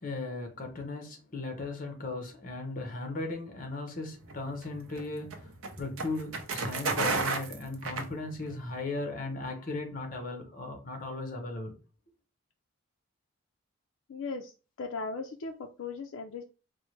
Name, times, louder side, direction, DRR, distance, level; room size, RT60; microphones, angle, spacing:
voice 1, 0.0-5.5 5.8-11.7, left 2 dB, 40° left, 0.8 m, -37 dB
sound 1, 4.2-8.7, right 3 dB, 85° right, 0.6 m, -33 dB
voice 2, 14.1-16.4, left 4 dB, 65° left, 0.4 m, -38 dB
4.4 x 2.0 x 3.1 m
head